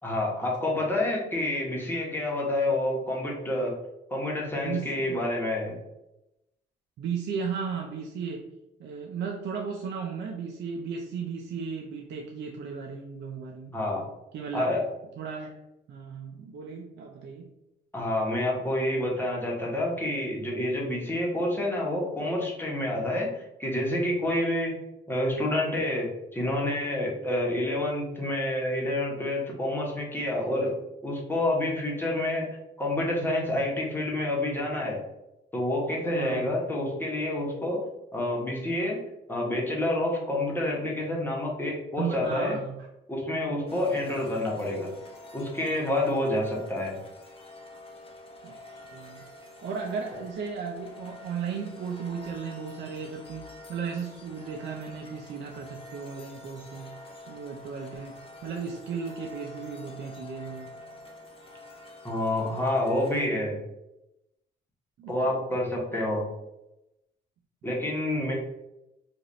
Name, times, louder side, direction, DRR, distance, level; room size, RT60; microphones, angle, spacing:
voice 1, 0.0-3.7 4.1-5.7 13.7-14.0 14.5-14.8 17.9-24.8 25.1-30.7 31.0-32.5 32.8-35.0 35.5-37.8 38.1-39.0 39.3-42.6 43.1-44.9 45.3-46.9 62.0-63.6 65.1-66.3 67.6-68.3, left 1 dB, 10° left, -3 dB, 1.2 m, -28 dB
voice 2, 4.6-5.3 7.0-8.5 8.8-13.8 14.3-14.7 15.2-15.6 15.9-17.5 36.1-36.5 42.0-42.8 48.4-49.2 49.6-56.9 57.3-60.7 65.0-65.5, right 6 dB, 65° right, 1 dB, 0.5 m, -35 dB
sound 1, 43.7-63.3, left 2 dB, 30° left, 0.8 m, -47 dB
3.0 x 2.6 x 3.9 m, 0.91 s
cardioid pair, 90°, 20 cm